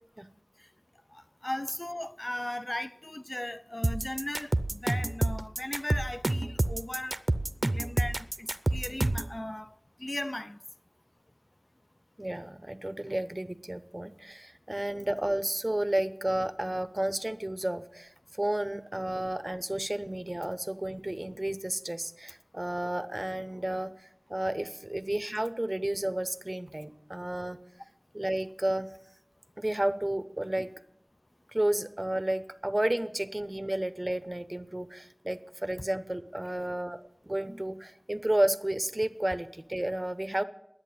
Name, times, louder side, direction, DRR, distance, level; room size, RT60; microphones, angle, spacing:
voice 1, 1.1-7.3 7.6-10.6, left 1 dB, 40° left, 0.4 m, -37 dB
sound 1, 3.8-9.3, right 2 dB, 60° right, 0.6 m, -28 dB
voice 2, 12.2-27.6 28.1-28.9 29.6-30.7 31.5-40.4, right 1 dB, 30° right, 0.8 m, -32 dB
10.5 x 8.4 x 8.6 m
wide cardioid pair, 40°, 0 cm